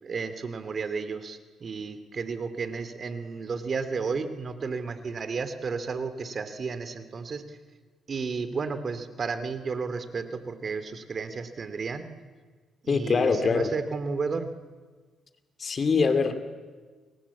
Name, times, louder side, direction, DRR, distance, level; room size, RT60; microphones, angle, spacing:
voice 1, 0.0-7.6 8.1-12.1 12.8-14.5, right 5 dB, 45° right, 11 dB, 2.6 m, -32 dB
voice 2, 12.9-13.7 15.6-16.4, left 5 dB, 40° left, 9 dB, 2.6 m, -23 dB
30.0 x 23.0 x 8.5 m, 1.4 s
cardioid pair, 90°, 0 cm